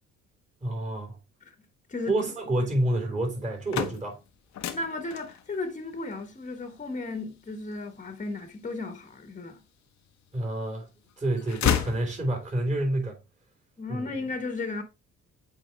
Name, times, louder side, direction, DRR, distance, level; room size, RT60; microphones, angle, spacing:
voice 1, 0.6-1.2 2.1-4.2 10.3-10.9 11.2-13.2 13.9-14.1, right 1 dB, 25° right, 3.4 m, -28 dB
sound 1, 3.4-9.4 9.9-10.8 11.1-12.7, left 9 dB, 65° left, 0.9 m, -33 dB
voice 2, 4.7-9.6 13.8-14.8, left 3 dB, 25° left, 1.3 m, -34 dB
7.9 x 4.3 x 3.3 m
cardioid pair, 90°, 30 cm